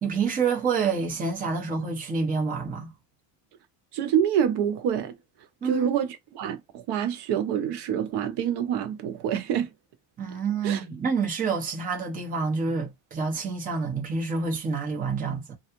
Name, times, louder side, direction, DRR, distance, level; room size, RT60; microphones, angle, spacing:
voice 1, 0.0-2.9 5.6-5.9 10.2-15.5, right 5 dB, 20° right, 0.7 m, -28 dB
voice 2, 3.9-5.1 5.6-9.7 10.6-10.8, right 9 dB, 55° right, 0.6 m, -26 dB
3.3 x 2.3 x 2.8 m
cardioid pair, 160°, 47 cm